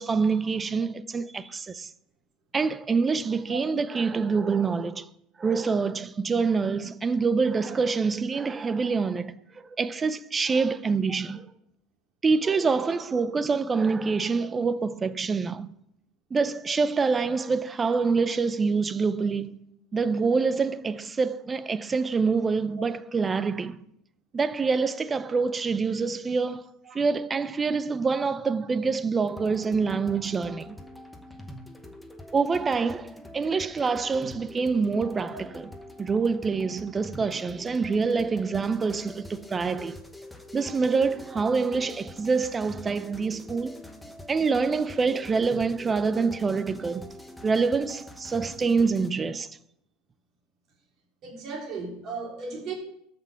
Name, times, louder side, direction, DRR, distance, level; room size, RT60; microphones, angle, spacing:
voice 1, 0.0-1.9 2.5-5.1 5.4-9.3 9.8-11.4 12.2-15.7 16.3-19.6 19.9-23.8 24.3-26.7 26.9-30.8 32.3-35.7 36.0-40.0 40.5-43.8 44.3-47.1 47.4-49.5, right 4 dB, 15° right, 0.4 m, -26 dB
sound 1, 29.2-49.1, left 1 dB, ahead, 0.9 m, -45 dB
voice 2, 51.2-52.7, right 4 dB, 35° right, 3.2 m, -37 dB
13.5 x 6.1 x 5.7 m
cardioid pair, 165°, 0 cm